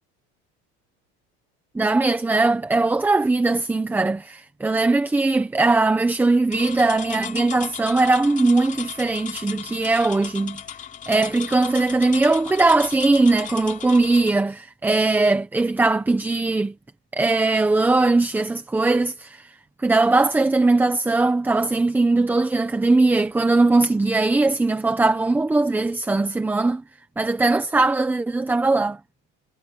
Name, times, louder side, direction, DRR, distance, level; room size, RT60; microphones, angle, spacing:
voice 1, 1.7-10.6 11.1-16.7 17.1-19.5 19.8-26.8 27.2-29.0, right 3 dB, 5° right, 1.1 m, -20 dB
sound 1, 6.5-14.3, left 8 dB, 25° left, 3.9 m, -36 dB
cardioid pair, 165°, 33 cm